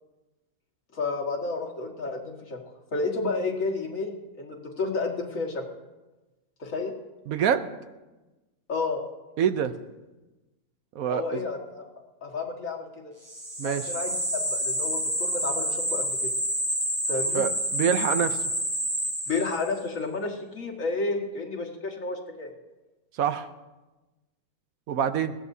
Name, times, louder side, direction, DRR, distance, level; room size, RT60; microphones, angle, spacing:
voice 1, 0.9-2.6 2.9-5.6 6.6-6.9 8.7-9.0 11.1-11.9 12.2-13.1 13.6-16.3 17.1-17.4 19.3-22.5, left 3 dB, 65° left, 0 dB, 2.2 m, -31 dB
voice 2, 7.3-7.7 9.4-9.7 10.9-11.5 13.6-13.9 17.3-18.4 23.1-23.5 24.9-25.3, right 8 dB, 75° right, 11 dB, 1.1 m, -26 dB
sound 1, 13.3-19.8, equal, 15° right, 1.3 m, -28 dB
21.0 x 16.0 x 2.7 m, 1.1 s
omnidirectional pair, 1.5 m